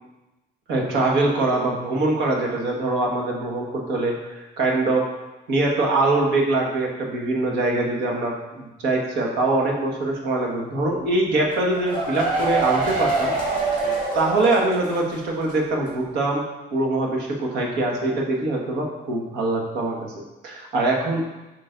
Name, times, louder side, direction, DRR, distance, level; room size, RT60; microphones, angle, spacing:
voice 1, 0.7-5.0 5.5-13.3 14.1-16.4 16.7-20.1 20.4-21.3, right 2 dB, 85° right, 0 dB, 1.6 m, -23 dB
sound 1, 11.5-15.1 15.4-15.5 15.9-16.0, right 3 dB, 50° right, 2.5 m, -25 dB
9.0 x 6.1 x 2.6 m, 1.0 s
cardioid pair, 110°, 17 cm